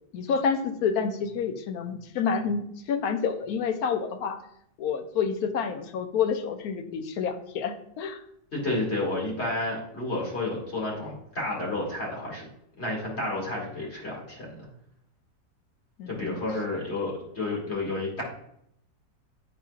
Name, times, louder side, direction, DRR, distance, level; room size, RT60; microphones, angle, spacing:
voice 1, 0.1-4.4 4.8-8.2 16.0-16.4, left 6 dB, 70° left, 8 dB, 1.0 m, -28 dB
voice 2, 8.5-12.5 12.8-14.7 16.1-18.2, left 2 dB, 35° left, -4 dB, 2.3 m, -31 dB
11.0 x 4.2 x 2.4 m, 0.74 s
omnidirectional pair, 2.0 m